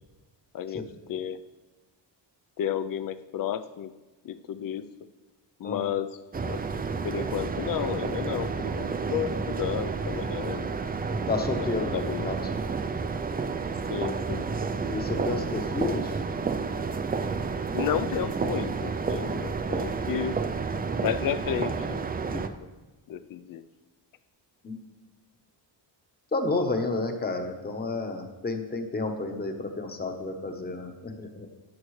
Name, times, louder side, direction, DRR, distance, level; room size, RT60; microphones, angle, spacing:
voice 1, 0.5-1.4 2.6-3.9 4.2-4.9 5.6-6.2 6.4-6.6 7.0-10.8 11.6-12.3 13.9-14.5 17.7-20.4 21.0-22.0 22.3-22.4 23.1-23.6, left 9 dB, 50° left, 12 dB, 0.5 m, -32 dB
sound 1, 6.3-22.5, right 5 dB, 20° right, 0.4 m, -30 dB
voice 2, 11.3-12.4 14.9-16.2 24.6-24.8 26.3-31.5, left 3 dB, 20° left, 5 dB, 1.0 m, -31 dB
13.5 x 9.8 x 3.2 m, 1.2 s
wide cardioid pair, 160°, 43 cm